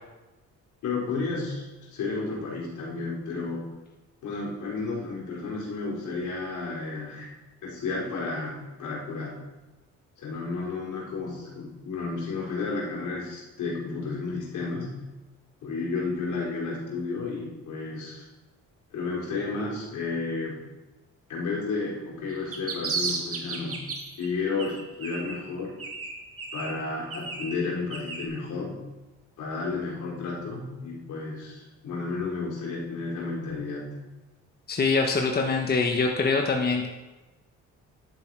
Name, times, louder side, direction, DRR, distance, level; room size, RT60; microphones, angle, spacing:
voice 1, 0.8-3.6 4.2-7.3 7.6-9.4 10.2-15.0 15.6-18.3 18.9-20.6 21.3-23.8 24.2-25.7 26.5-28.8 29.4-34.0, left 3 dB, 80° left, -4 dB, 4.0 m, -32 dB
sound 1, 22.3-24.3 24.6-25.5 25.8-28.3, right 4 dB, 50° right, 2.2 m, -34 dB
voice 2, 34.7-36.9, left 4 dB, 30° left, 2 dB, 1.3 m, -24 dB
11.0 x 6.8 x 4.7 m, 1.1 s
cardioid pair, 90°, 30 cm